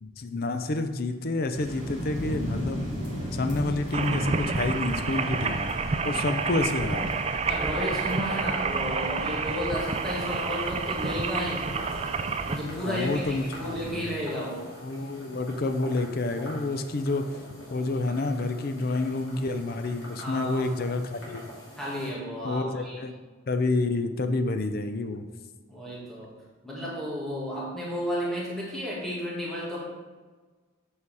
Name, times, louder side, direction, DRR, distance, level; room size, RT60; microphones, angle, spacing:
voice 1, 0.0-3.0 3.3-5.7 6.0-7.1 12.9-14.2 14.8-17.3 17.7-21.4 22.4-23.2 23.5-25.3, left 2 dB, 45° left, 8 dB, 0.5 m, -29 dB
sound 1, 1.5-13.9, equal, 20° left, 2.3 m, -37 dB
sound 2, 3.9-12.6, right 4 dB, 30° right, 0.4 m, -29 dB
voice 2, 7.5-11.8 12.5-14.6 20.2-20.7 21.8-23.0 25.7-26.3 26.6-29.9, equal, ahead, -7 dB, 1.9 m, -33 dB
sound 3, 9.8-22.1, equal, 75° left, 2.6 m, -45 dB
8.3 x 5.0 x 4.7 m, 1.4 s
head